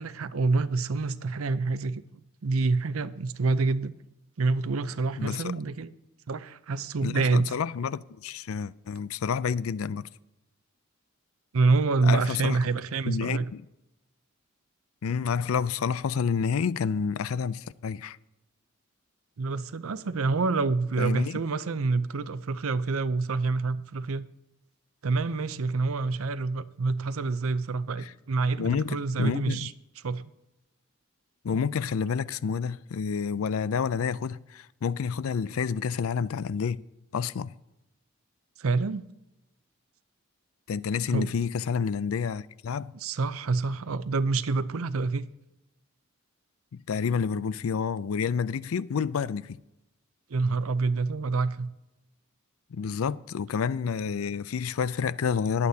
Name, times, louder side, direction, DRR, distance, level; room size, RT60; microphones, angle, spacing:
voice 1, 0.0-2.0 2.4-3.9 4.4-5.9 6.3-7.6 11.5-13.5 19.4-24.3 25.0-29.7 30.0-30.3 38.6-39.0 41.1-41.3 42.9-45.3 50.3-51.7, right 3 dB, 80° right, 0.6 m, -27 dB
voice 2, 5.2-5.5 7.0-10.1 12.0-12.6 13.1-13.6 15.0-18.2 21.0-21.4 28.0-28.1 28.6-29.7 31.4-36.8 37.1-37.5 40.7-42.9 46.7-49.6 52.7-55.7, left 6 dB, 80° left, 0.4 m, -29 dB
21.0 x 8.4 x 2.8 m
head